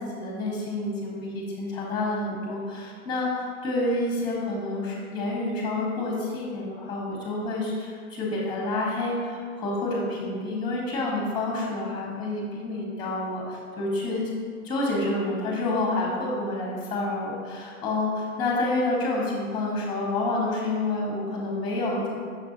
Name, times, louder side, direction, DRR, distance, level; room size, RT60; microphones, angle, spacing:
voice 1, 0.0-14.3 14.6-22.1, left 2 dB, 10° left, -2 dB, 1.1 m, -28 dB
5.9 x 5.8 x 2.7 m, 2.1 s
hypercardioid pair, 150°, 39 cm